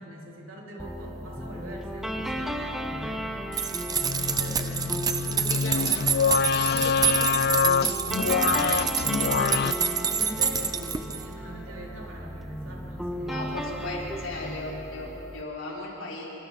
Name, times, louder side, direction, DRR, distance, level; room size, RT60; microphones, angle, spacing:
voice 1, 0.0-3.3 3.8-14.8, equal, 70° right, -3 dB, 4.1 m, -42 dB
sound 1, 0.8-15.4, equal, ahead, 1.0 m, -35 dB
sound 2, 3.5-11.3, right 7 dB, 20° right, 0.6 m, -28 dB
sound 3, 4.0-9.7, left 6 dB, 50° left, 0.4 m, -26 dB
voice 2, 5.5-5.8 13.2-16.3, left 2 dB, 65° left, -4 dB, 4.4 m, -36 dB
26.0 x 24.5 x 4.2 m, 2.9 s
head